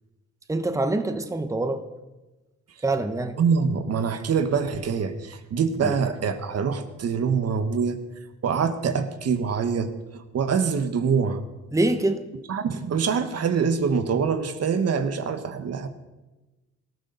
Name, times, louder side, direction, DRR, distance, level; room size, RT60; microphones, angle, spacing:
voice 1, 0.5-1.8 2.8-3.4 5.8-5.9 11.7-12.2, right 2 dB, 10° right, 8 dB, 1.2 m, -25 dB
voice 2, 3.4-8.0 8.4-11.4 12.5-15.9, right 6 dB, 55° right, 9 dB, 1.5 m, -25 dB
19.0 x 14.0 x 4.1 m, 1.1 s
cardioid pair, 90°, 30 cm